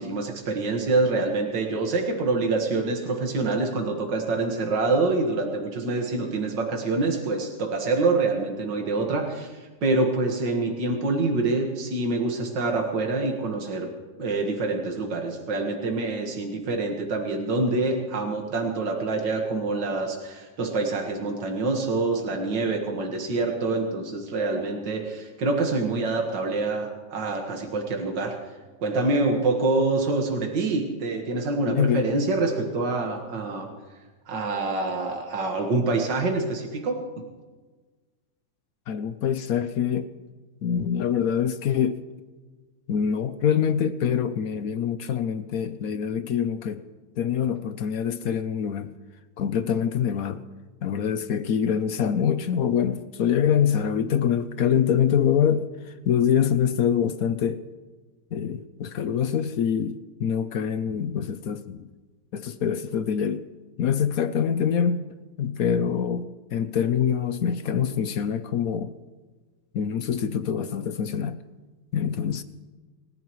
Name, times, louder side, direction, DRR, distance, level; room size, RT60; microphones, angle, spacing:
voice 1, 0.0-13.9 14.2-28.4 28.8-33.7 34.3-37.3, right 3 dB, 80° right, 2 dB, 2.3 m, -26 dB
voice 2, 31.7-32.1 38.9-40.1 40.6-42.0 42.9-46.8 47.2-48.9 49.4-50.4 50.8-57.6 58.3-61.9 62.3-63.4 63.8-65.0 65.4-68.9 69.7-71.4 71.9-72.4, left 8 dB, 65° left, 11 dB, 1.0 m, -25 dB
27.0 x 15.0 x 3.1 m, 1.3 s
omnidirectional pair, 1.9 m